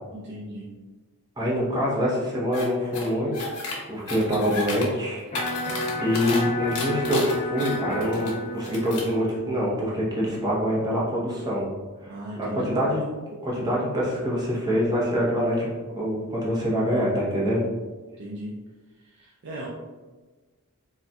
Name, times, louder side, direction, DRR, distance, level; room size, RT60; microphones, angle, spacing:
voice 1, 0.1-0.7 5.7-6.0 12.1-12.7 18.2-18.5 19.0-19.7, right 1 dB, 50° right, -4 dB, 0.4 m, -38 dB
voice 2, 1.4-3.5 3.9-5.3 5.6-5.7 6.0-11.7 12.0-13.0 13.4-17.7, equal, 20° right, -5 dB, 0.7 m, -25 dB
sound 1, 2.5-2.6 2.9-3.7 4.1-4.8 5.2-6.4 6.7-8.3 8.6-9.1, left 3 dB, 90° left, 0.8 m, -33 dB
Electric guitar, 5.3-11.4, left 1 dB, 30° left, 0.5 m, -33 dB
4.0 x 2.3 x 2.3 m, 1.3 s
head